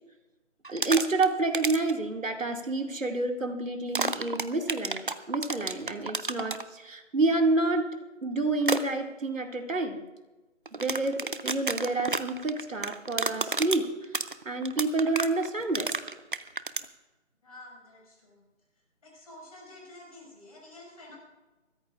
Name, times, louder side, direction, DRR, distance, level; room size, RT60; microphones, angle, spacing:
sound 1, 0.6-1.3 1.5-1.9 3.9-6.6 8.6-8.8 10.7-16.9, right 3 dB, 45° right, 0.6 m, -30 dB
voice 1, 0.7-7.8 8.2-10.0 10.8-13.9 14.5-15.9, right 2 dB, 85° right, 3 dB, 2.2 m, -28 dB
voice 2, 17.4-18.4 19.0-21.2, left 1 dB, 30° left, -2 dB, 5.3 m, -49 dB
25.5 x 13.5 x 2.4 m, 1.1 s
figure-of-eight pair, 170°, 38 cm